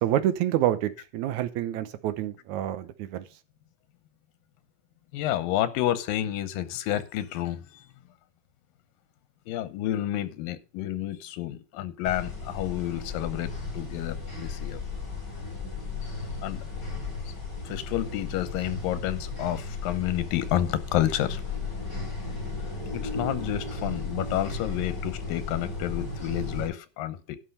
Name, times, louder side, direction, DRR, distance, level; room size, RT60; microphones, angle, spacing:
voice 1, 0.0-3.2, right 12 dB, 70° right, 2.0 m, -27 dB
voice 2, 5.1-7.6 9.5-14.8 16.4-16.6 17.7-21.4 22.9-27.4, left 12 dB, 85° left, 2.6 m, -30 dB
sound 1, 12.0-26.7, left 3 dB, 25° left, 6.1 m, -35 dB
11.5 x 5.6 x 6.6 m
omnidirectional pair, 3.9 m